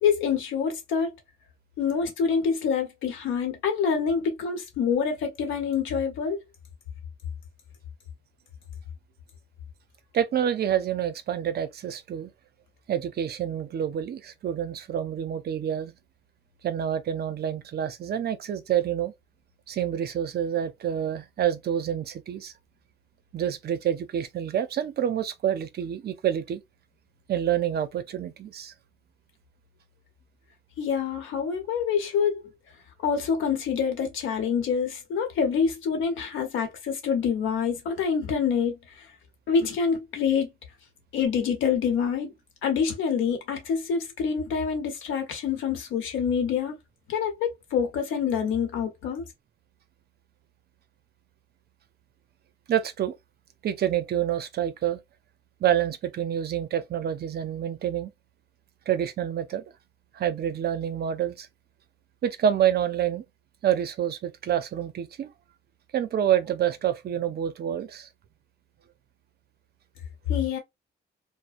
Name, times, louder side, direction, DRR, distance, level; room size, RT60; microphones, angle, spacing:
voice 1, 0.0-1.1 1.8-6.4 30.8-32.4 33.0-39.1 39.5-40.5 41.1-42.3 42.6-46.8 47.1-49.3 70.3-70.6, left 6 dB, 90° left, 0.9 m, -26 dB
voice 2, 10.1-12.3 12.9-15.9 16.6-19.1 19.7-22.5 23.3-26.6 27.3-28.7 52.7-53.1 53.6-55.0 55.6-58.1 58.9-59.6 60.1-61.5 62.2-63.2 63.6-65.3 65.9-68.1, right 10 dB, 55° right, 0.5 m, -27 dB
2.6 x 2.0 x 2.5 m
cardioid pair, 90°, 20 cm